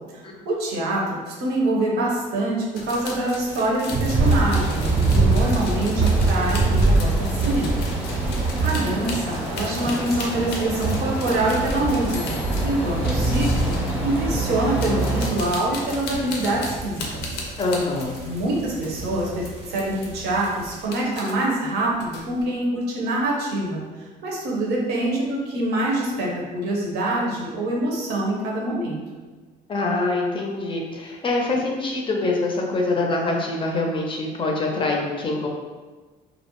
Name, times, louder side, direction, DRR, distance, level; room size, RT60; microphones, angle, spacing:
voice 1, 0.1-7.8 8.6-13.7 14.0-17.2 18.2-23.8 24.2-29.0, right 1 dB, 80° right, -3 dB, 0.7 m, -25 dB
sound 1, 2.7-14.0 14.6-19.0 19.4-20.1 20.4-21.3 21.7-22.4, left 3 dB, 85° left, 0.5 m, -36 dB
sound 2, 3.9-20.8, right 3 dB, 40° right, 0.4 m, -25 dB
sound 3, 4.1-15.3, right 1 dB, 10° right, 0.7 m, -30 dB
voice 2, 17.6-18.2 29.7-35.5, left 2 dB, 30° left, 0 dB, 0.4 m, -24 dB
2.4 x 2.0 x 2.9 m, 1.3 s
cardioid pair, 110°, 17 cm